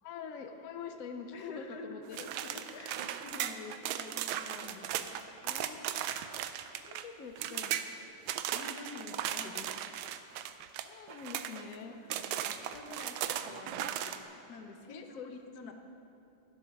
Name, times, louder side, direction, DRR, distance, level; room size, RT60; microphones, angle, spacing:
voice 1, 0.0-2.2 5.4-5.9 6.8-8.1 10.9-11.9 14.9-15.3 15.6-15.7, left 6 dB, 75° left, 6 dB, 0.7 m, -45 dB
voice 2, 1.3-5.3 8.5-9.7 11.9-15.7, left 3 dB, 55° left, 4 dB, 1.3 m, -48 dB
sound 1, 2.1-7.0 7.4-7.9 8.3-11.8 12.1-14.2, right 11 dB, 80° right, 1.5 m, -37 dB
12.5 x 12.0 x 5.3 m, 2.7 s
omnidirectional pair, 2.4 m